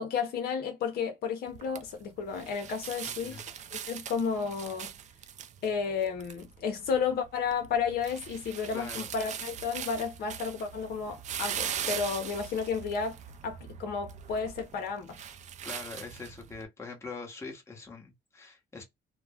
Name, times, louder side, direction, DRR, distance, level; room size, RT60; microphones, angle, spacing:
voice 1, 0.0-3.4 3.9-4.9 5.6-13.2 13.4-15.2, left 6 dB, 65° left, 0.7 m, -32 dB
sound 1, 1.5-16.6, right 9 dB, 45° right, 0.4 m, -41 dB
voice 2, 8.7-9.1 15.6-18.8, left 4 dB, 15° left, 1.0 m, -43 dB
2.3 x 2.1 x 3.4 m
cardioid pair, 110°, 17 cm